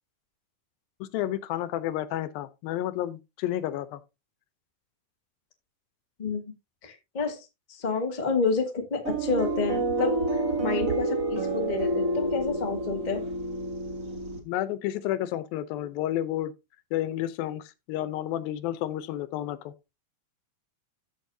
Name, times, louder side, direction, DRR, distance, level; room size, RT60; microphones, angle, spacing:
voice 1, 1.0-4.0 14.4-16.5 16.9-19.7, left 13 dB, 85° left, 2.6 m, -31 dB
voice 2, 6.8-13.2, left 4 dB, 70° left, 0.4 m, -29 dB
sound 1, 9.0-14.4, right 2 dB, 35° right, 1.3 m, -28 dB
14.0 x 6.2 x 2.7 m
omnidirectional pair, 4.1 m